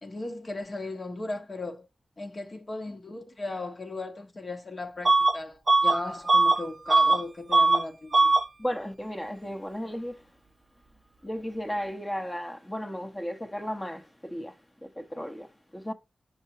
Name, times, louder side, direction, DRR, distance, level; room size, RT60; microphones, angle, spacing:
voice 1, 0.0-1.9 2.2-8.3, left 2 dB, 40° left, 1.3 m, -37 dB
Bus / Alarm, 5.1-5.4 5.7-7.2 7.5-7.8 8.1-8.5, right 3 dB, 40° right, 0.6 m, -21 dB
voice 2, 8.6-10.3 11.2-15.9, equal, 15° left, 1.1 m, -35 dB
7.1 x 5.7 x 2.8 m
cardioid pair, 70°, 0 cm